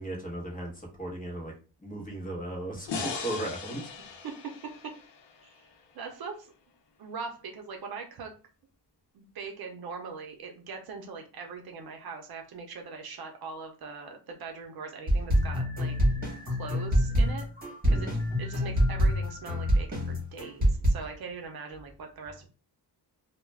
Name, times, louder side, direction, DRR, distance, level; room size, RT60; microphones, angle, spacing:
voice 1, 0.0-1.5 1.8-3.8 17.8-18.1, right 1 dB, 20° left, -2 dB, 0.9 m, -36 dB
sound 1, 2.9-6.1, left 5 dB, 75° left, 0.7 m, -39 dB
voice 2, 5.9-6.5 7.0-8.3 9.1-16.0 16.5-17.4 17.9-18.1 18.4-22.5, right 4 dB, 60° right, 3 dB, 0.6 m, -41 dB
sound 2, 15.1-20.9, equal, 20° right, 1.1 m, -26 dB
2.3 x 2.1 x 3.2 m, 0.36 s
wide cardioid pair, 135°, 41 cm